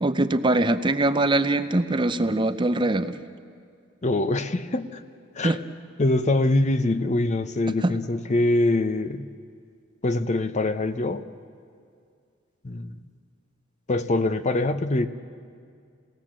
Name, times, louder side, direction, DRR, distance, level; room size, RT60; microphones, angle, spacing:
voice 1, 0.0-3.2 5.4-5.6 7.8-7.9, right 2 dB, 25° right, 11 dB, 0.6 m, -22 dB
voice 2, 4.0-5.0 5.4-5.6 6.0-9.3 10.0-11.3 12.6-13.0 13.9-15.1, left 2 dB, 35° left, 11 dB, 0.7 m, -24 dB
28.5 x 18.5 x 7.4 m, 2.3 s
head